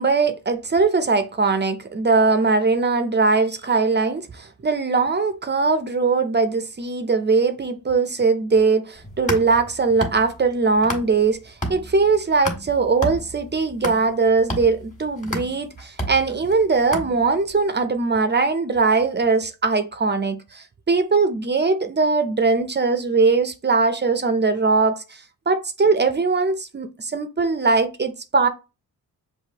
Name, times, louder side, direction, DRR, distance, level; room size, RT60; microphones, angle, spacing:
voice 1, 0.0-28.5, right 4 dB, 30° right, 0.5 m, -20 dB
sound 1, 9.0-11.3 11.6-17.5, equal, 20° left, 1.5 m, -31 dB
6.5 x 2.6 x 2.9 m
cardioid pair, 95°, 39 cm